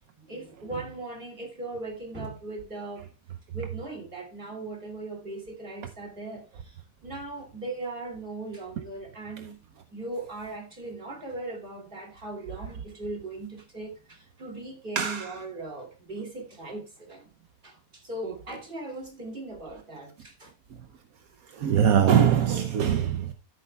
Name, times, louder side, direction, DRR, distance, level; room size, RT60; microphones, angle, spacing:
voice 1, 0.2-3.1 3.5-9.6 9.9-17.3 17.6-20.5, right 2 dB, 35° right, 2.9 m, -38 dB
voice 2, 15.0-15.3 21.6-23.3, right 9 dB, 75° right, 1.2 m, -22 dB
14.0 x 8.3 x 2.3 m
omnidirectional pair, 1.6 m